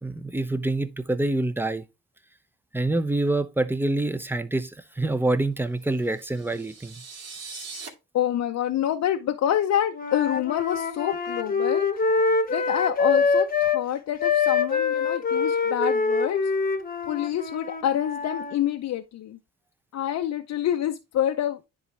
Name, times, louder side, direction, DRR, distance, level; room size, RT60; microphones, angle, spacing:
voice 1, 0.0-1.8 2.7-7.0, right 2 dB, 5° right, 0.7 m, -26 dB
sound 1, 6.0-7.9, right 4 dB, 55° right, 2.1 m, -41 dB
voice 2, 8.1-11.9 12.5-16.4 17.1-19.4 19.9-21.6, left 11 dB, 65° left, 0.7 m, -27 dB
Wind instrument woodwind instrument, 9.9-13.8 14.2-18.6, left 5 dB, 30° left, 1.0 m, -25 dB
10.0 x 3.9 x 3.2 m
cardioid pair, 90°, 30 cm